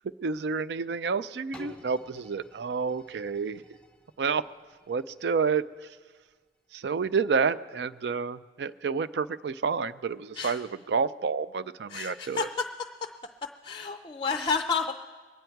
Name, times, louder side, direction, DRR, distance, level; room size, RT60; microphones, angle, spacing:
voice 1, 0.2-3.6 4.2-4.4 4.9-6.0 6.7-12.5, right 5 dB, 75° right, 15 dB, 0.4 m, -29 dB
sound 1, 1.5-7.3 7.8-7.9, equal, 5° left, 0.8 m, -54 dB
voice 2, 11.9-12.5 13.6-14.9, left 5 dB, 25° left, 6 dB, 0.4 m, -30 dB
22.0 x 9.3 x 4.5 m, 1.4 s
head